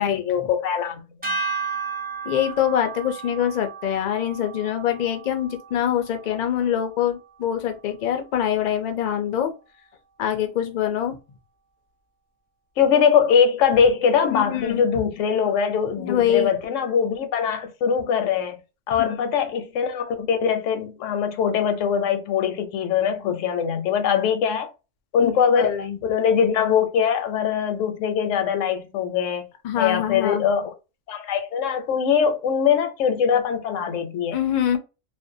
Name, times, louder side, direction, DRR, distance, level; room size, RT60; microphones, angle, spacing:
voice 1, 0.0-1.3 12.8-18.6 18.9-24.7 25.1-29.5 29.8-30.7 31.1-34.4, left 7 dB, 85° left, 0.9 m, -22 dB
sound 1, 1.2-7.6, right 5 dB, 10° right, 0.7 m, -34 dB
voice 2, 2.3-9.5 10.2-11.2 14.3-14.8 15.9-16.5 19.0-19.1 25.2-25.3 25.6-26.0 29.6-30.4 34.3-34.8, left 10 dB, 65° left, 0.4 m, -24 dB
2.5 x 2.1 x 2.6 m
omnidirectional pair, 1.3 m